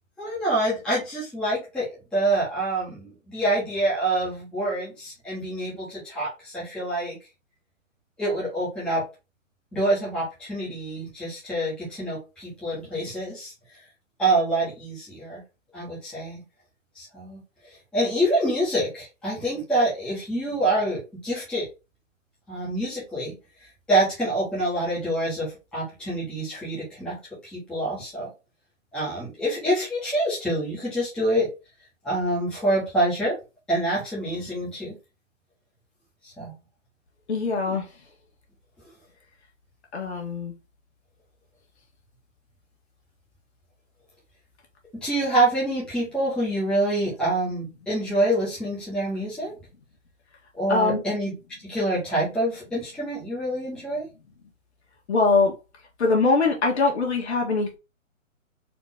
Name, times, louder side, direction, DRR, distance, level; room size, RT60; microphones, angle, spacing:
voice 1, 0.2-7.2 8.2-9.0 9.7-13.5 14.2-15.4 15.7-16.4 16.9-21.7 22.5-23.3 23.6-28.3 28.9-31.5 32.0-33.4 33.7-35.0 36.2-36.5 37.6-37.7 44.9-49.5 50.5-51.4 51.6-54.1, right 1 dB, ahead, 1.3 m, -26 dB
voice 2, 37.3-37.9 39.9-40.5 50.7-51.0 55.1-55.5 56.0-57.8, left 3 dB, 55° left, 1.8 m, -22 dB
4.3 x 3.0 x 3.8 m
hypercardioid pair, 160°, 40 cm